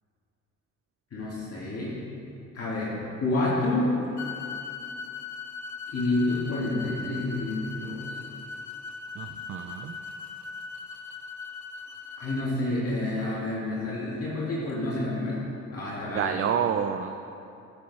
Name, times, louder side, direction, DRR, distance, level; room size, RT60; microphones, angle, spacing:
voice 1, 1.1-2.0 2.5-3.9 5.9-8.2 12.2-15.4 15.7-16.5, left 2 dB, 50° left, -7 dB, 2.2 m, -29 dB
sound 1, 4.2-12.5, left 5 dB, 70° left, 0.9 m, -39 dB
voice 2, 9.2-10.0 16.1-17.2, right 8 dB, 45° right, 7 dB, 0.5 m, -29 dB
11.5 x 6.9 x 4.2 m, 2.7 s
cardioid pair, 90°, 30 cm